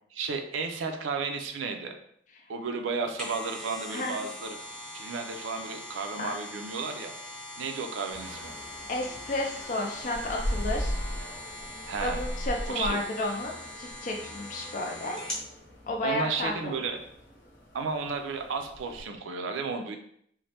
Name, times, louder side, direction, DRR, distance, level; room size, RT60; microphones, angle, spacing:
voice 1, 0.1-1.9 2.5-4.6 4.9-7.1 7.6-8.5 11.9-12.2 12.7-13.0 16.0-17.0 17.7-20.0, right 4 dB, 90° right, 5 dB, 0.4 m, -33 dB
sound 1, 2.9-15.5 15.9-16.0, left 1 dB, 5° left, 0.7 m, -42 dB
sound 2, 8.1-19.1, equal, 60° left, 0.7 m, -38 dB
voice 2, 8.9-11.0 12.0-15.2 15.9-16.8, left 2 dB, 40° left, 0 dB, 0.4 m, -32 dB
3.1 x 2.1 x 2.8 m, 0.68 s
head